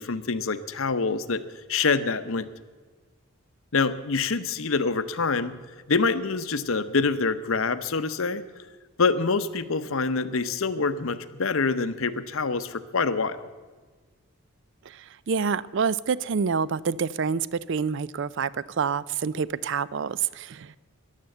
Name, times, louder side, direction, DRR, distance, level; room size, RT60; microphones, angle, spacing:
voice 1, 0.0-1.4 1.7-2.5 3.7-5.6 5.9-8.4 9.0-13.4, left 4 dB, 65° left, 12 dB, 0.8 m, -26 dB
voice 2, 14.9-20.8, right 6 dB, 55° right, 19 dB, 0.4 m, -27 dB
14.0 x 11.0 x 7.8 m, 1.4 s
head